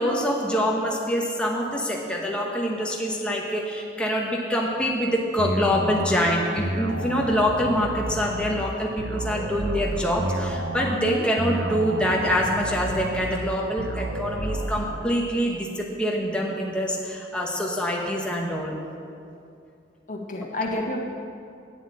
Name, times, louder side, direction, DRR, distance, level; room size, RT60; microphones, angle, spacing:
voice 1, 0.0-18.7, equal, 5° left, -2 dB, 1.0 m, -25 dB
sound 1, 5.4-15.0, right 1 dB, 80° right, 0.8 m, -31 dB
voice 2, 10.9-11.2 20.1-21.0, left 1 dB, 50° left, 1 dB, 1.4 m, -29 dB
8.8 x 7.8 x 8.5 m, 2.5 s
head